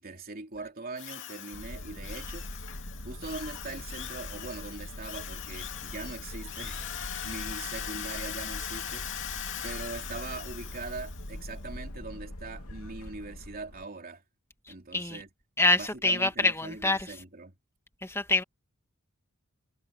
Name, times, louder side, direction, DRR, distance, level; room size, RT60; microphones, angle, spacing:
voice 1, 0.0-2.6 3.0-9.2 9.6-14.2 14.7-15.3 15.7-17.5, right 3 dB, 45° right, 3.1 m, -41 dB
Drill, 1.0-11.4, left 9 dB, 60° left, 2.6 m, -40 dB
sound 1, 1.5-13.8, left 1 dB, 75° left, 2.8 m, -42 dB
voice 2, 15.6-17.1 18.0-18.4, left 2 dB, 10° left, 2.4 m, -25 dB
head